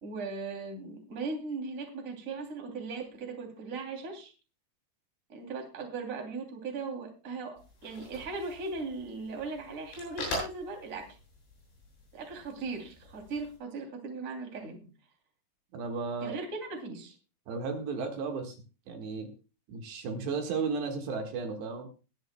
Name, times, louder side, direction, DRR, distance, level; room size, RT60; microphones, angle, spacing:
voice 1, 0.0-4.3 5.3-11.1 12.1-14.8 16.2-17.1, right 4 dB, 20° right, 2 dB, 2.5 m, -38 dB
sound 1, 7.6-13.6, left 1 dB, 80° left, 10.0 m, -43 dB
voice 2, 15.7-16.4 17.5-18.6 18.9-19.3 19.7-21.9, right 4 dB, 70° right, 4 dB, 3.7 m, -34 dB
22.5 x 9.4 x 2.2 m, 0.33 s
omnidirectional pair, 5.2 m